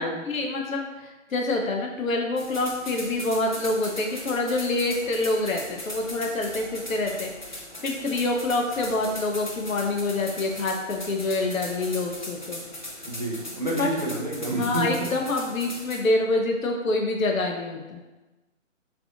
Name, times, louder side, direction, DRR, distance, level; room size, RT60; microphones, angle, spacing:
voice 1, 0.0-12.6 13.8-13.9 14.6-18.0, left 2 dB, 85° left, 2 dB, 0.6 m, -26 dB
sound 1, 2.4-16.0, left 1 dB, 40° left, 0.4 m, -39 dB
voice 2, 13.1-15.1, right 1 dB, 35° right, -3 dB, 0.4 m, -29 dB
3.3 x 2.5 x 2.4 m, 1.1 s
figure-of-eight pair, 155°, 40 cm